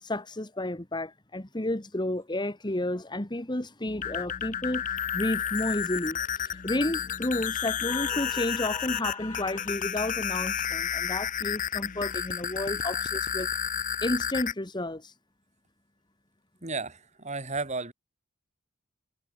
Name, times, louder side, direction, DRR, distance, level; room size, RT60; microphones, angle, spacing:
voice 1, 0.0-4.8 5.1-13.5 14.0-15.1, left 1 dB, 20° left, 1.6 m, -31 dB
sound 1, 3.9-14.5, left 9 dB, 40° left, 0.7 m, -31 dB
voice 2, 16.6-17.9, right 3 dB, 35° right, 3.8 m, -33 dB
head